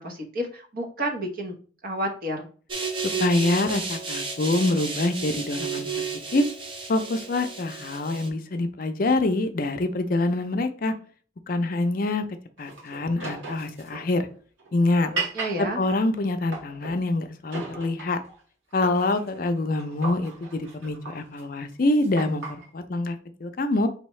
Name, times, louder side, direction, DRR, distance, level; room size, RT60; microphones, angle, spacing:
voice 1, 0.0-1.6 1.8-2.5 15.0-15.8, right 1 dB, 50° right, 1 dB, 1.1 m, -30 dB
sound 1, 2.7-8.3, right 5 dB, 25° right, 0.6 m, -32 dB
voice 2, 3.0-6.5 6.9-10.9 11.5-12.3 12.6-14.3 14.7-15.1 15.6-18.2 18.7-23.9, left 2 dB, 45° left, 8 dB, 0.5 m, -25 dB
sound 2, 12.6-17.0 17.5-18.4 18.7-22.7, right 4 dB, 85° right, 1.6 m, -37 dB
4.6 x 3.4 x 3.1 m, 0.41 s
head